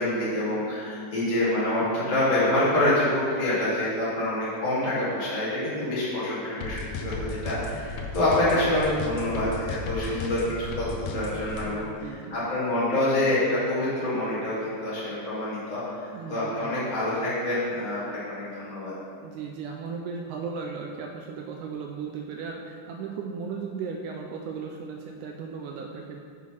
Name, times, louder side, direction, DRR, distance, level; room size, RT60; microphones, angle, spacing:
voice 1, 0.0-11.9 12.3-18.9, left 1 dB, 15° left, -10 dB, 1.7 m, -26 dB
sound 1, 6.6-11.6, left 4 dB, 75° left, 2.2 m, -34 dB
voice 2, 11.5-12.3 16.1-16.8 19.2-26.2, right 5 dB, 80° right, 2 dB, 1.9 m, -36 dB
7.2 x 6.1 x 5.6 m, 2.3 s
omnidirectional pair, 3.9 m